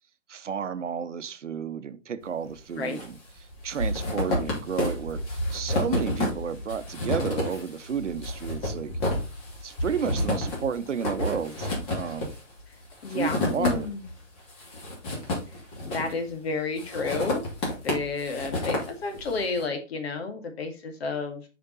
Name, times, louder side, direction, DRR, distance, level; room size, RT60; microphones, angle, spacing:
voice 1, 0.3-8.9 9.6-12.3 13.1-13.9, right 7 dB, 70° right, 0.8 m, -32 dB
sound 1, 2.5-3.1 3.4-14.1 14.5-16.3 16.8-19.4, left 1 dB, 30° left, 2.7 m, -30 dB
voice 2, 13.0-14.0 15.8-17.4 17.8-21.4, left 4 dB, 55° left, 1.9 m, -31 dB
6.6 x 5.1 x 4.0 m
figure-of-eight pair, 135°, 38 cm